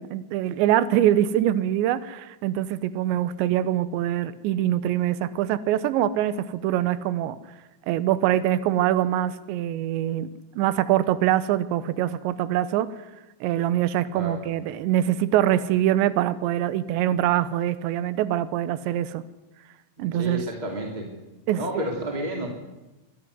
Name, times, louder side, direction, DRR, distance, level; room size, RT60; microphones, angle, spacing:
voice 1, 0.0-7.4 7.9-10.3 10.6-12.9 13.4-19.2 20.0-20.4 21.5-21.9, right 12 dB, 80° right, 14 dB, 3.0 m, -24 dB
voice 2, 20.1-21.1 21.5-22.5, right 1 dB, 15° right, 1 dB, 1.9 m, -31 dB
24.5 x 12.5 x 9.6 m, 1.0 s
omnidirectional pair, 5.6 m